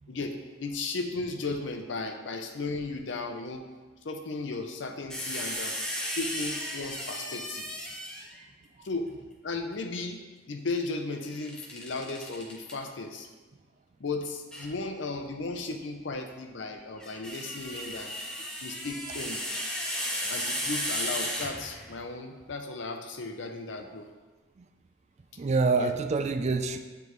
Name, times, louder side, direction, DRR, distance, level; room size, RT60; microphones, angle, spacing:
voice 1, 0.1-3.7 4.0-5.7 6.1-7.7 8.8-9.1 9.4-10.2 10.5-13.3 14.0-18.1 18.6-19.6 20.3-24.1 25.8-25.9, left 3 dB, 70° left, 5 dB, 0.6 m, -35 dB
sound 1, 5.1-8.4 11.3-12.7 14.5-14.7 16.8-22.0, equal, 5° left, 0.8 m, -35 dB
voice 2, 25.4-26.8, right 4 dB, 35° right, 7 dB, 0.3 m, -27 dB
9.3 x 3.4 x 3.1 m, 1.2 s
head